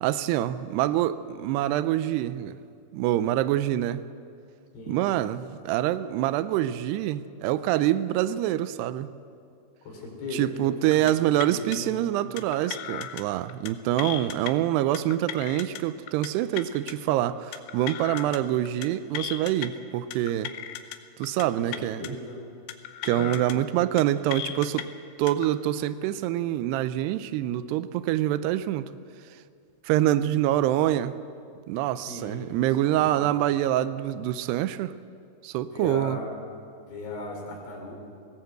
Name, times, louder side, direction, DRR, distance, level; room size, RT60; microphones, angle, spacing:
voice 1, 0.0-2.6 2.9-4.0 4.9-9.1 10.3-20.5 21.2-22.2 23.0-24.9 25.2-28.9 29.8-31.2 31.7-34.9 35.4-36.2, right 13 dB, 80° right, 14 dB, 2.7 m, -26 dB
voice 2, 9.8-12.3 21.6-22.5 23.1-23.6 30.1-30.4 32.1-33.2 35.7-36.3 36.8-37.9, left 2 dB, 70° left, 0 dB, 5.7 m, -38 dB
sound 1, 10.9-11.1 11.4-11.8 12.4-13.2 13.5-13.7 14.0-14.5 14.9-15.8 16.1-16.3 16.6-16.9 17.5-18.4 18.7-18.9 19.1-19.7 20.1-21.0 21.2-21.4 21.7-22.1 22.7-23.5 23.8-24.0 24.3-24.8 25.3-25.5, left 11 dB, 90° left, 3.1 m, -36 dB
18.5 x 18.0 x 8.0 m, 2.4 s
omnidirectional pair, 4.9 m